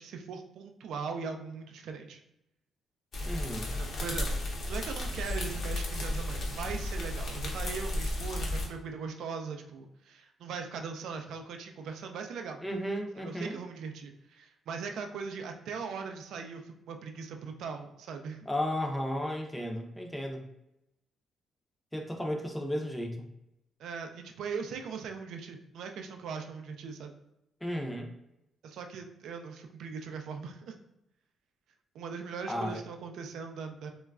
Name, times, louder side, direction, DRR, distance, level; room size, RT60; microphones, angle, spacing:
voice 1, 0.0-2.2 3.7-12.6 13.2-18.5 23.8-27.1 28.6-30.7 31.9-33.9, right 5 dB, 75° right, 5 dB, 0.3 m, -40 dB
sound 1, 3.1-8.7, left 1 dB, 60° left, 0.7 m, -34 dB
voice 2, 3.2-3.7 12.6-13.6 18.5-20.4 21.9-23.3 27.6-28.1 32.5-32.8, equal, 5° left, 1 dB, 0.5 m, -34 dB
3.0 x 2.2 x 2.3 m, 0.87 s
cardioid pair, 90°, 0 cm